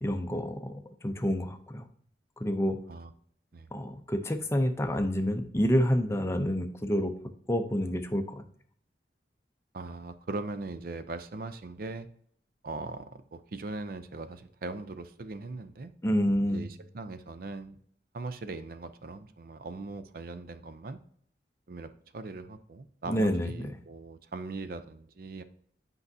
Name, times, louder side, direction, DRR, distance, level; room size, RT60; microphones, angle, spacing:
voice 1, 0.0-1.9 2.4-2.8 3.7-7.1 7.5-8.4 16.0-16.7 23.1-23.5, equal, 15° left, 7 dB, 0.5 m, -28 dB
voice 2, 9.7-12.1 12.6-15.9 16.4-17.8 18.1-21.0 21.7-25.4, right 3 dB, 50° right, 11 dB, 0.4 m, -40 dB
8.3 x 5.3 x 2.7 m, 0.62 s
head